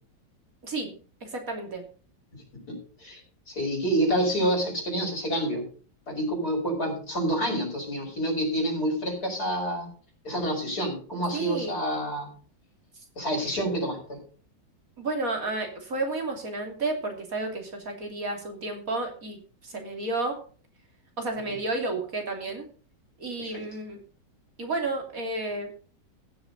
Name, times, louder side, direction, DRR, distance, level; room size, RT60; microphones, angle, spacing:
voice 1, 0.6-1.8 11.3-11.8 15.0-20.4 21.2-22.7 23.2-24.0 24.6-25.7, right 2 dB, 50° right, 3 dB, 3.4 m, -32 dB
voice 2, 2.7-3.2 3.5-5.7 6.1-9.9 10.2-12.3 13.2-14.2 23.4-23.6, right 1 dB, 55° left, 0 dB, 6.4 m, -28 dB
16.0 x 7.1 x 5.3 m, 0.41 s
omnidirectional pair, 2.0 m